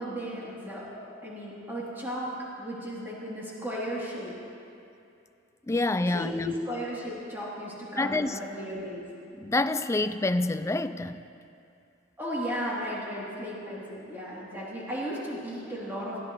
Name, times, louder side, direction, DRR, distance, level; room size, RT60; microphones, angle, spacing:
voice 1, 0.0-2.3 2.6-4.3 6.0-9.0 12.2-16.2, equal, 10° right, -7 dB, 3.5 m, -35 dB
voice 2, 5.7-6.5 8.0-8.4 9.3-11.2, left 2 dB, 15° left, 11 dB, 0.4 m, -27 dB
21.0 x 15.5 x 3.3 m, 2.6 s
head